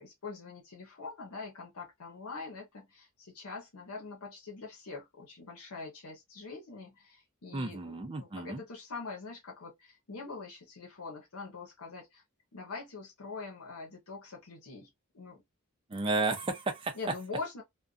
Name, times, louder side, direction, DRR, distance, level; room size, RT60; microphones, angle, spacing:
voice 1, 0.0-12.2 12.5-14.9 15.1-15.4 16.9-17.6, left 4 dB, 80° left, 0.8 m, -44 dB
voice 2, 7.5-8.6 15.9-17.0, right 3 dB, 25° right, 0.4 m, -32 dB
2.4 x 2.2 x 2.3 m
head